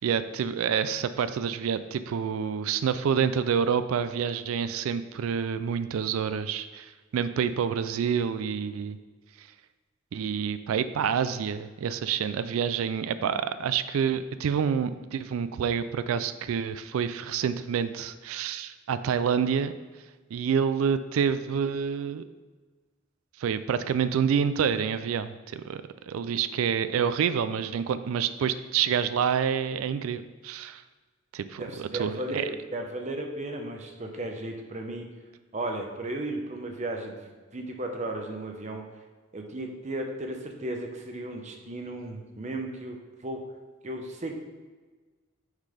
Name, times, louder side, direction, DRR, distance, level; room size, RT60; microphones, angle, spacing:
voice 1, 0.0-9.0 9.4-9.5 10.1-19.7 20.3-22.2 23.4-30.8 31.3-32.5, right 7 dB, 80° right, 13 dB, 0.3 m, -28 dB
voice 2, 31.6-35.1 35.5-38.8 39.3-43.0 43.2-43.4 43.8-44.4, right 1 dB, 35° right, 3 dB, 0.6 m, -35 dB
6.4 x 3.8 x 4.9 m, 1.4 s
head